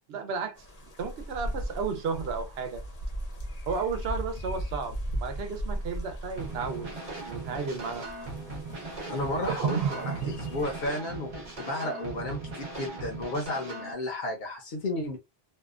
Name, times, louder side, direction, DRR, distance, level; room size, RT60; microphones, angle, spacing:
voice 1, 0.1-2.8 3.7-6.9 7.3-8.1 9.5-10.5, right 5 dB, 75° right, 0.8 m, -33 dB
sound 1, 0.6-10.9, equal, 40° left, 0.7 m, -38 dB
sound 2, 6.4-13.9, right 2 dB, 40° right, 0.8 m, -39 dB
voice 2, 9.1-10.0 10.3-11.3 11.6-15.2, left 1 dB, 65° left, 0.9 m, -33 dB
2.6 x 2.2 x 2.4 m
omnidirectional pair, 1.1 m